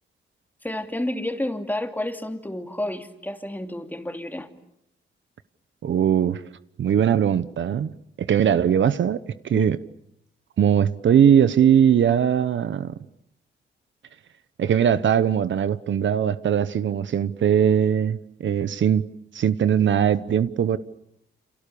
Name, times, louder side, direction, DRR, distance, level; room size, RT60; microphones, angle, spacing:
voice 1, 0.6-4.5 9.5-9.7, left 1 dB, 10° left, 2.8 m, -30 dB
voice 2, 5.8-6.4 6.8-9.2 9.4-9.8 10.6-12.9 14.6-19.0 19.3-20.8, right 9 dB, 65° right, 1.0 m, -20 dB
29.5 x 27.5 x 7.0 m
cardioid pair, 100°, 21 cm